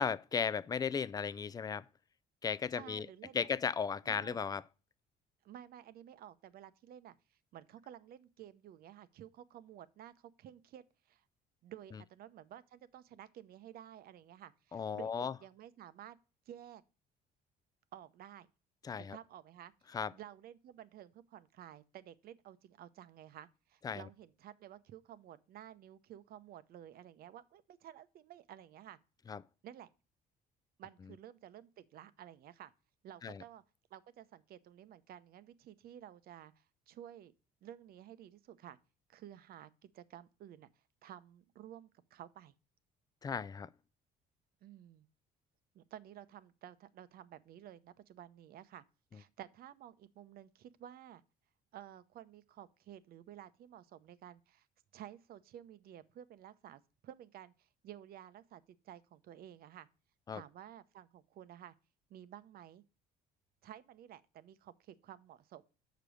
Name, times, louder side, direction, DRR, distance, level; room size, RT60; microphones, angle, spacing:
voice 1, 0.0-1.9 2.4-3.1 3.3-4.6 11.9-12.0 14.7-15.3 18.8-19.2 19.9-20.1 23.8-24.0 29.3-29.4 33.2-33.4 43.2-43.7 60.3-60.4, left 6 dB, 20° left, 0.3 m, -35 dB
voice 2, 2.7-3.5 4.1-4.4 5.4-7.2 7.5-11.2 11.6-16.2 16.5-16.8 17.9-18.5 19.0-19.7 20.1-29.0 29.6-29.9 30.8-32.7 33.0-33.6 33.9-37.3 37.6-38.8 39.1-40.7 41.0-42.5 44.6-45.1 45.7-48.8 49.1-51.2 51.7-54.7 54.9-59.9 60.3-61.7 62.1-62.8 63.6-65.6, right 11 dB, 65° right, 0.7 m, -53 dB
6.7 x 5.2 x 6.2 m
cardioid pair, 110°, 17 cm